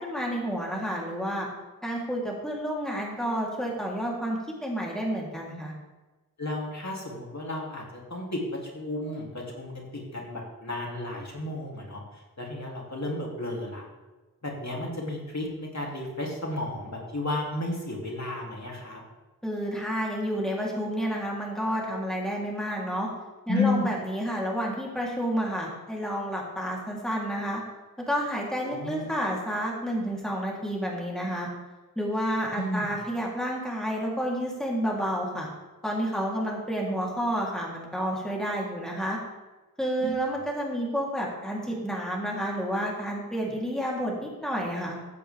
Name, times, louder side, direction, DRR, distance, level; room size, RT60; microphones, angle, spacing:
voice 1, 0.0-1.5 1.8-5.7 19.4-23.1 23.5-27.6 28.1-31.5 31.9-35.5 35.8-39.2 39.8-45.0, equal, ahead, -3 dB, 3.4 m, -30 dB
voice 2, 6.4-12.0 12.4-13.8 14.4-19.0 23.5-23.8 28.6-29.1 32.5-32.9 40.0-40.1, left 2 dB, 50° left, -2 dB, 3.1 m, -32 dB
15.0 x 8.3 x 3.6 m, 1.2 s
wide cardioid pair, 45°, 35 cm